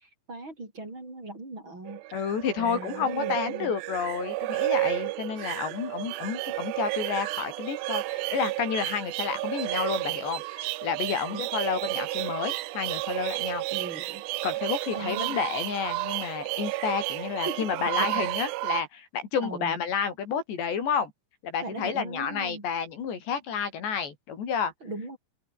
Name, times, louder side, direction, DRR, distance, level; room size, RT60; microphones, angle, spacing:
voice 1, 0.0-2.0 2.6-3.7 5.4-5.5 11.3-11.4 13.7-14.2 14.9-15.4 17.1-18.3 19.4-19.8 21.6-22.7 24.8-25.2, right 2 dB, 25° right, 7.1 m, -39 dB
sound 1, 1.9-18.8, right 19 dB, 85° right, 2.9 m, -32 dB
voice 2, 2.1-13.6 14.4-21.1 21.4-24.7, left 7 dB, 75° left, 6.2 m, -30 dB
omnidirectional pair, 5.0 m